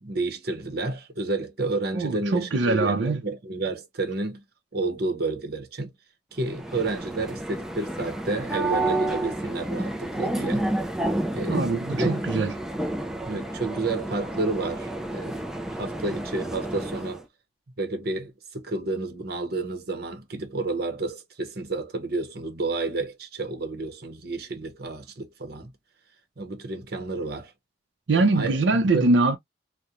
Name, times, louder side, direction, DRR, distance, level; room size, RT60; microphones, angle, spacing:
voice 1, 0.0-4.4 4.7-5.9 6.3-10.7 11.3-12.2 13.2-15.4 15.7-17.2 17.8-25.7 26.4-27.5 28.1-29.1, right 2 dB, 60° right, 0.8 m, -30 dB
voice 2, 1.9-3.2 11.5-12.5 28.1-29.4, right 3 dB, 90° right, 0.6 m, -23 dB
sound 1, 6.4-17.2, right 1 dB, 5° right, 0.3 m, -30 dB
2.9 x 2.2 x 2.4 m
head